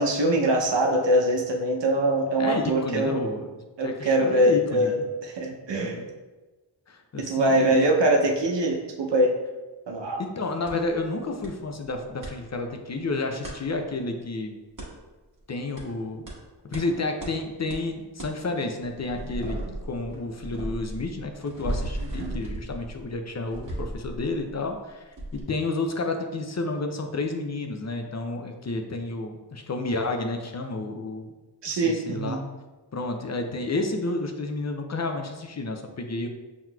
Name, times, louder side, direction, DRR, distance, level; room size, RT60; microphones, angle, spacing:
voice 1, 0.0-3.2 3.8-5.0 5.2-6.0 7.1-9.3 9.9-10.2 22.0-22.4 31.6-32.4, right 1 dB, 75° right, 1 dB, 0.8 m, -23 dB
voice 2, 2.4-3.5 3.8-5.0 5.8-6.0 6.9-7.9 10.2-14.5 15.5-16.3 16.7-19.6 19.9-25.0 25.3-31.3 31.7-32.4 32.9-36.3, left 2 dB, 40° left, 4 dB, 0.5 m, -30 dB
sound 1, 10.7-10.8 11.4-11.5 11.8-12.3 13.4-13.6 14.8-14.9 15.8-15.9 16.3-16.4 16.7-16.8 17.2-17.3 17.7-17.8 18.2-18.3 18.8-24.8 25.2-25.4, right 1 dB, 45° right, 1.5 m, -35 dB
5.7 x 3.0 x 2.3 m, 1.2 s
cardioid pair, 45°, 43 cm